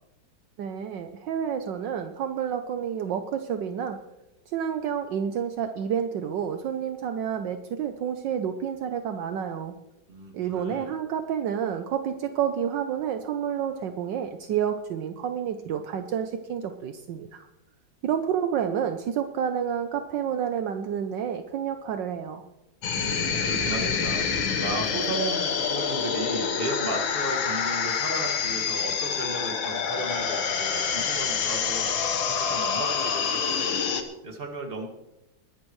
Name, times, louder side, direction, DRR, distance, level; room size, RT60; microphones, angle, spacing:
voice 1, 0.6-4.0 4.5-9.7 10.3-17.5 18.0-22.4, right 8 dB, 75° right, 7 dB, 1.4 m, -29 dB
voice 2, 10.1-10.9 23.0-24.2 24.6-34.9, right 2 dB, 30° right, 2 dB, 2.1 m, -35 dB
sound 1, 22.8-34.0, left 6 dB, 85° left, 2.0 m, -27 dB
21.0 x 12.0 x 3.1 m, 0.93 s
omnidirectional pair, 2.1 m